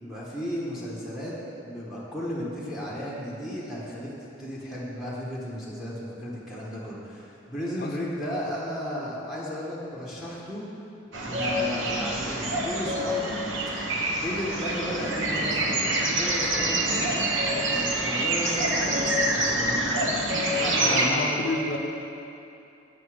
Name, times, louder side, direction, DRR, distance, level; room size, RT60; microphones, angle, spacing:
voice 1, 0.0-1.4 1.6-4.1 4.4-10.6 11.2-13.4 14.1-20.3 20.6-21.8, equal, ahead, -7 dB, 1.1 m, -34 dB
sound 1, 11.1-21.1, right 1 dB, 85° right, 1.0 m, -26 dB
voice 2, 20.8-21.8, left 2 dB, 55° left, 2 dB, 0.5 m, -29 dB
8.0 x 5.9 x 4.9 m, 2.8 s
head